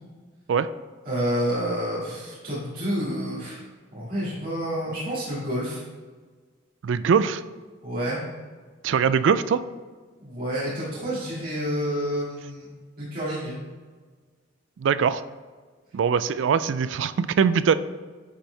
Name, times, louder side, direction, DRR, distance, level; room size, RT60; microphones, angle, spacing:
voice 1, 1.0-3.6 3.9-5.8 7.8-8.2 10.2-12.7 13.0-13.6, equal, 45° right, -9 dB, 2.0 m, -29 dB
voice 2, 6.8-7.4 8.8-9.6 14.8-15.2 15.9-17.7, right 6 dB, 70° right, 15 dB, 0.3 m, -22 dB
9.9 x 4.4 x 3.3 m, 1.5 s
head